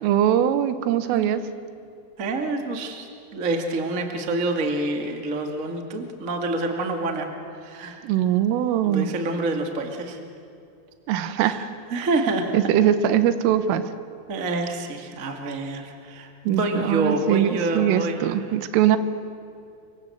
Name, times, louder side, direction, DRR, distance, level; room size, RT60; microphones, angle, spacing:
voice 1, 0.0-1.4 8.0-9.1 11.1-11.6 12.5-13.8 16.5-19.0, right 10 dB, 85° right, 11 dB, 3.7 m, -21 dB
voice 2, 2.2-3.1 3.3-7.3 7.6-8.0 8.8-10.2 11.4-12.5 14.3-18.4, right 2 dB, 60° right, 4 dB, 0.8 m, -27 dB
28.0 x 24.0 x 8.0 m, 2.6 s
omnidirectional pair, 5.7 m